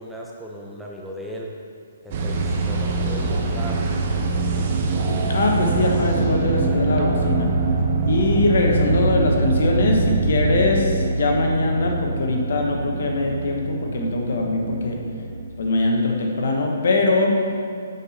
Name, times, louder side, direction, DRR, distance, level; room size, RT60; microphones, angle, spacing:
voice 1, 0.0-1.5 2.0-3.8, equal, ahead, -3 dB, 0.6 m, -36 dB
sound 1, 2.1-15.5, right 3 dB, 40° right, 0.8 m, -23 dB
voice 2, 5.3-7.5 8.0-15.0 15.6-17.3, left 2 dB, 65° left, 1 dB, 1.3 m, -22 dB
7.1 x 5.8 x 4.3 m, 2.3 s
hypercardioid pair, 155°, 0 cm